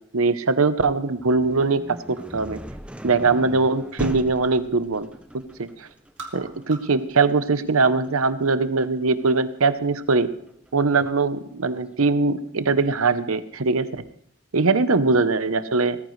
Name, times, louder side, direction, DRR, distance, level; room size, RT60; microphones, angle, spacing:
voice 1, 0.1-2.6 3.0-5.1 5.6-5.9 6.3-10.3 10.7-13.9 14.5-16.0, right 3 dB, 85° right, 12 dB, 0.9 m, -21 dB
sound 1, 1.1-10.9, right 1 dB, 5° right, 0.6 m, -39 dB
sound 2, 2.1-2.7 3.1-4.7 5.0-5.6 5.9-7.0 7.3-8.1, right 3 dB, 60° right, 2.5 m, -44 dB
18.5 x 14.5 x 3.3 m, 0.67 s
head